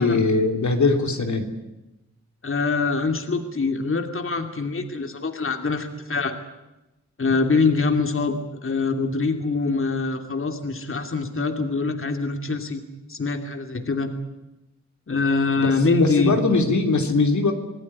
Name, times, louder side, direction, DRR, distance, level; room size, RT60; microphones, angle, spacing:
voice 1, 0.0-1.5 15.6-17.5, left 3 dB, 75° left, 4 dB, 3.2 m, -21 dB
voice 2, 2.4-6.4 7.2-12.8 13.1-14.1 15.1-16.4, left 4 dB, 45° left, 6 dB, 2.7 m, -24 dB
25.5 x 18.5 x 9.9 m, 0.97 s
cardioid pair, 75°, 29 cm